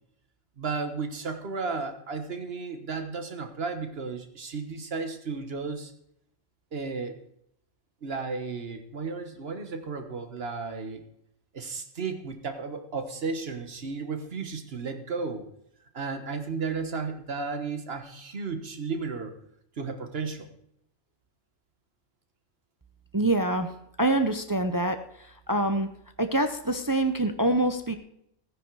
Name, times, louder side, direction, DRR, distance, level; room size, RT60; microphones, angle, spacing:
voice 1, 0.6-5.9 6.7-7.2 8.0-11.0 11.5-15.4 15.9-19.3 19.8-20.5, right 4 dB, 55° right, 6 dB, 1.6 m, -34 dB
voice 2, 23.1-23.7 24.0-25.0 25.5-25.9 26.2-28.0, right 1 dB, 25° right, 7 dB, 0.5 m, -25 dB
15.0 x 9.8 x 4.7 m, 0.76 s
omnidirectional pair, 1.3 m